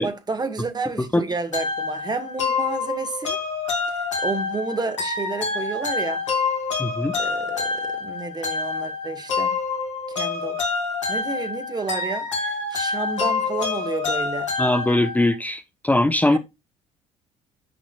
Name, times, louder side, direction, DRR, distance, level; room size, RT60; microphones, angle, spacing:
voice 1, 0.0-3.4 3.9-6.2 7.2-9.6 10.1-10.6 11.1-14.5 16.3-16.4, right 4 dB, 25° right, 1.9 m, -30 dB
sound 1, 1.5-15.3, left 4 dB, 90° left, 3.6 m, -27 dB
voice 2, 6.8-7.1 14.6-16.4, left 1 dB, 10° left, 1.1 m, -21 dB
10.0 x 6.1 x 2.5 m
hypercardioid pair, 55°, 15 cm